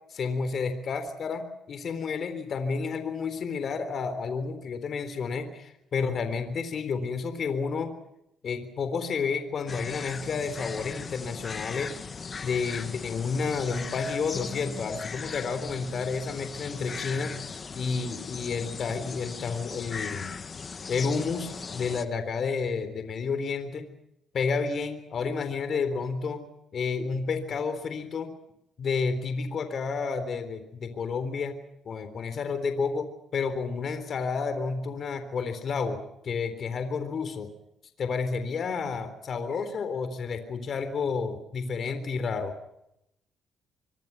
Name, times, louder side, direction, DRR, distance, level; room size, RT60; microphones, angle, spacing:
voice 1, 0.1-7.9 8.4-11.9 12.4-20.4 20.9-23.9 24.3-26.5 26.7-28.3 28.8-31.5 31.9-36.0 36.2-37.5 38.0-42.5, left 5 dB, 55° left, 10 dB, 3.7 m, -30 dB
sound 1, 9.7-22.0, left 5 dB, 40° left, 1.7 m, -38 dB
26.0 x 25.0 x 5.8 m, 0.82 s
cardioid pair, 90°, 0 cm